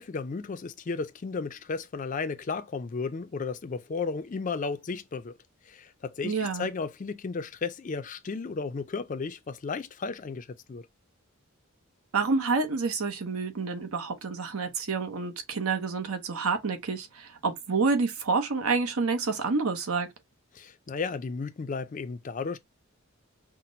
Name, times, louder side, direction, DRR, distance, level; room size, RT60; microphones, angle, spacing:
voice 1, 0.0-5.3 5.7-10.9 20.5-22.6, left 4 dB, 35° left, 0.4 m, -34 dB
voice 2, 6.2-6.7 12.1-20.1, right 4 dB, 80° right, 0.9 m, -28 dB
5.7 x 2.1 x 2.6 m
head